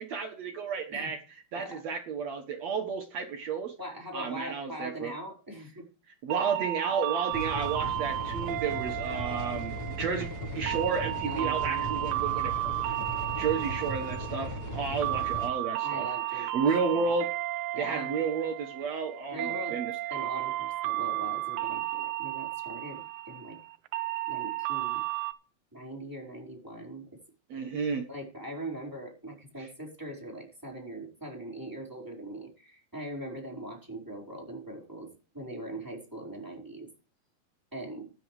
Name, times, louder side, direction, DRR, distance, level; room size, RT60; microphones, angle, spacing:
voice 1, 0.0-3.7 4.1-5.1 6.2-10.3 10.5-12.5 12.8-13.0 13.4-17.3 17.8-19.9 27.5-28.1 29.6-29.7, right 5 dB, 65° right, 5 dB, 1.7 m, -32 dB
voice 2, 3.8-5.8 11.2-12.1 15.8-17.1 17.7-18.1 19.3-19.8 20.1-23.6 24.3-25.0 25.7-27.0 27.6-27.7 28.1-35.1 35.3-36.9 37.7-38.1, right 1 dB, 5° right, -1 dB, 3.9 m, -41 dB
sound 1, 6.3-25.3, right 17 dB, 85° right, 2.5 m, -33 dB
sound 2, 7.3-15.5, equal, 65° left, 0.9 m, -37 dB
15.5 x 10.5 x 3.2 m, 0.36 s
omnidirectional pair, 4.5 m